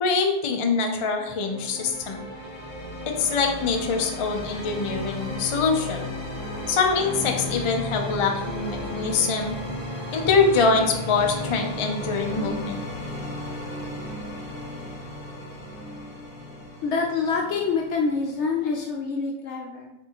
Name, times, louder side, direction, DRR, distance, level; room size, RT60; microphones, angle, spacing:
voice 1, 0.0-2.2 3.2-6.0 6.7-9.5 10.1-12.8, left 4 dB, 40° left, 3 dB, 0.4 m, -24 dB
sound 1, 1.1-18.9, left 1 dB, 25° left, 0.9 m, -34 dB
voice 2, 16.8-19.9, left 4 dB, 75° left, 0 dB, 0.9 m, -26 dB
6.0 x 2.6 x 2.9 m, 1.0 s
omnidirectional pair, 1.2 m